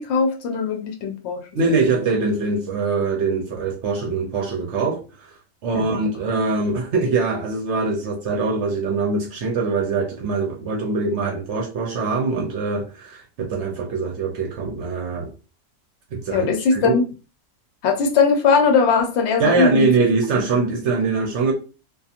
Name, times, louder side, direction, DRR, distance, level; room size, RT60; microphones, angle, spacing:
voice 1, 0.0-1.5 5.7-6.0 16.3-17.0 17.8-19.9, left 5 dB, 65° left, 0.9 m, -19 dB
voice 2, 1.5-5.3 5.6-15.3 16.1-17.0 19.4-21.5, right 4 dB, 70° right, 0.9 m, -23 dB
2.8 x 2.4 x 2.4 m
omnidirectional pair, 1.3 m